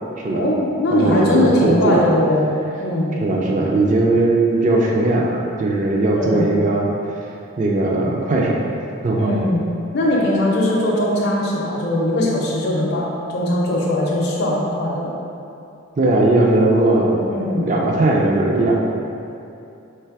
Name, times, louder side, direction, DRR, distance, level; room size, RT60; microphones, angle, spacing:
voice 1, 0.3-2.5 2.8-3.2 6.1-6.5 9.2-9.6 9.9-15.1 17.3-17.7, left 1 dB, 50° left, -5 dB, 0.5 m, -20 dB
voice 2, 0.9-2.0 3.2-6.9 7.6-8.6 9.0-9.3 16.0-17.2 17.5-18.7, right 2 dB, 35° right, -1 dB, 0.4 m, -18 dB
3.3 x 3.2 x 4.7 m, 2.7 s
head